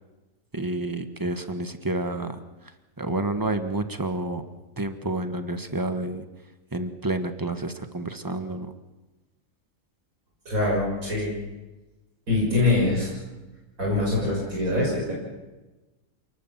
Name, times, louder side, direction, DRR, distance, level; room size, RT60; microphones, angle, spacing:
voice 1, 0.5-2.4 3.0-4.4 4.8-6.2 6.7-8.7, right 2 dB, 15° right, 9 dB, 1.4 m, -29 dB
voice 2, 10.5-11.3 12.3-13.1 13.8-15.1, left 2 dB, 70° right, -4 dB, 7.1 m, -24 dB
28.0 x 19.5 x 7.5 m, 1.1 s
omnidirectional pair, 1.5 m